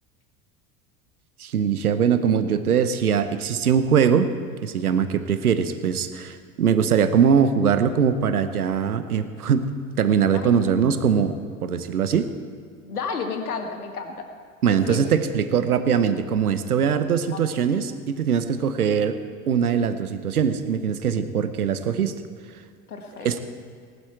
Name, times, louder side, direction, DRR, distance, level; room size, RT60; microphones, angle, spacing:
voice 1, 1.4-4.3 4.6-12.3 14.6-19.2 19.5-22.2 23.2-23.4, right 7 dB, 90° right, 11 dB, 0.9 m, -22 dB
voice 2, 12.8-14.3 14.7-15.1 17.3-17.4 22.9-23.4, left 5 dB, 90° left, 5 dB, 1.6 m, -32 dB
19.5 x 11.5 x 4.5 m, 2.2 s
hypercardioid pair, 75°, 43 cm